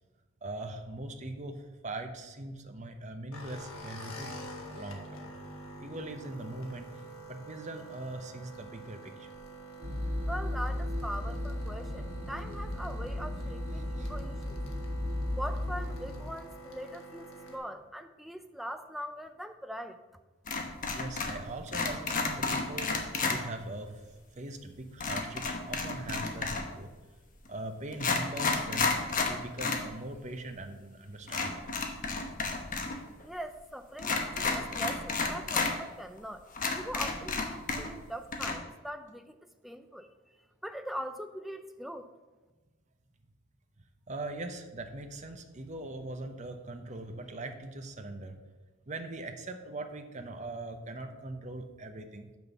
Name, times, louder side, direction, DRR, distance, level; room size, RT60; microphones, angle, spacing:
voice 1, 0.4-4.4 4.7-5.3 5.8-6.9 7.3-9.3 14.0-14.1 20.9-24.0 24.3-26.9 27.5-29.0 29.2-31.6 44.1-48.4 48.9-52.3, right 2 dB, 35° right, 6 dB, 0.8 m, -41 dB
sound 1, 3.3-17.6, right 1 dB, 75° left, 1.3 m, -47 dB
sound 2, 9.8-16.2, left 1 dB, 55° right, 2.3 m, -35 dB
voice 2, 10.3-14.6 15.4-20.0 33.2-36.4 36.7-39.4 39.6-40.1 40.6-42.1, equal, ahead, 8 dB, 0.4 m, -41 dB
sound 3, 20.5-21.4 21.7-23.4 25.0-26.8 27.4-27.5 27.9-29.8 30.2-30.3 31.3-32.9 33.2-33.3 34.0-35.7 36.2-36.3 36.5-38.0 38.3-38.5, left 4 dB, 40° left, 1.0 m, -31 dB
6.1 x 5.3 x 6.7 m, 1.2 s
head